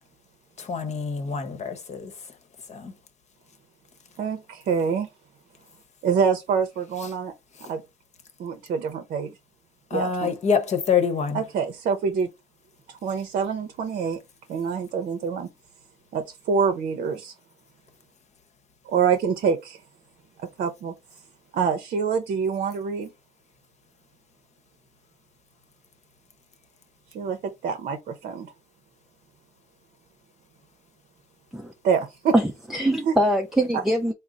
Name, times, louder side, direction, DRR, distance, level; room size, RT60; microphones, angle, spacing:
voice 1, 0.6-2.1 2.7-2.9 9.9-11.4, left 6 dB, 40° left, 1.0 m, -25 dB
voice 2, 4.2-5.1 6.0-7.3 7.7-7.8 8.4-9.3 9.9-10.4 11.3-12.3 12.9-14.2 14.5-15.5 16.1-17.3 18.9-19.8 20.6-20.9 21.5-23.1 27.1-28.5 31.8-32.4 33.1-33.2, right 6 dB, 60° right, 0.7 m, -26 dB
voice 3, 32.3-34.1, right 1 dB, ahead, 0.4 m, -23 dB
3.7 x 2.0 x 3.9 m
cardioid pair, 110°, 17 cm